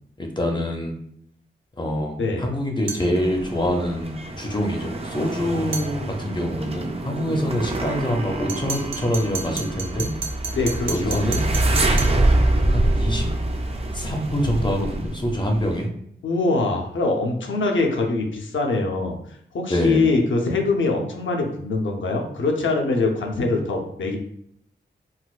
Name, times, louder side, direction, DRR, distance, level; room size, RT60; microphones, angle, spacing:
voice 1, 0.2-0.9 1.8-10.1 10.9-11.4 12.7-13.3 13.9-15.9 19.7-20.1, equal, 25° left, 3 dB, 0.5 m, -25 dB
sound 1, 2.9-3.1 5.7-5.9 8.5-12.2, right 5 dB, 85° right, 0.5 m, -32 dB
sound 2, 3.1-15.9, right 1 dB, 30° right, 0.4 m, -25 dB
voice 2, 10.5-11.2 16.2-19.2 19.5-24.2, left 3 dB, 80° left, 2 dB, 0.6 m, -23 dB
4.0 x 2.2 x 2.4 m, 0.70 s
wide cardioid pair, 120°, 20 cm